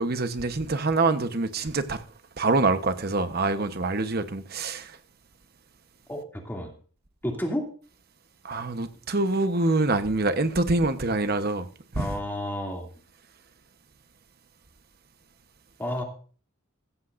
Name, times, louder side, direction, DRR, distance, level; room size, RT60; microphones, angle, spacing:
voice 1, 0.0-2.0 2.4-5.0 8.4-11.7 11.9-12.2, right 3 dB, 45° right, 1.0 m, -25 dB
voice 2, 6.1-6.7 7.2-7.7 12.0-12.9 15.8-16.0, left 1 dB, 10° left, 2.6 m, -31 dB
15.5 x 14.0 x 2.6 m
head